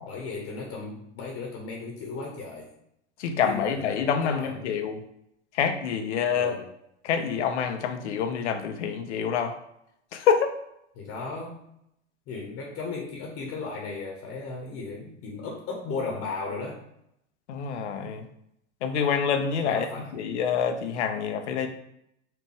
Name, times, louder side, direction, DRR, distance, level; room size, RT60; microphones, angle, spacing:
voice 1, 0.1-2.7 3.4-4.6 6.3-6.7 10.9-11.7 12.3-16.8 19.6-20.1, left 4 dB, 40° left, 0 dB, 1.1 m, -36 dB
voice 2, 3.2-5.0 5.5-6.6 7.0-9.5 10.1-10.5 17.5-18.2 18.8-19.9 20.1-21.7, left 7 dB, 75° left, 7 dB, 0.7 m, -26 dB
4.4 x 2.5 x 4.6 m, 0.76 s
hypercardioid pair, 95°, 35 cm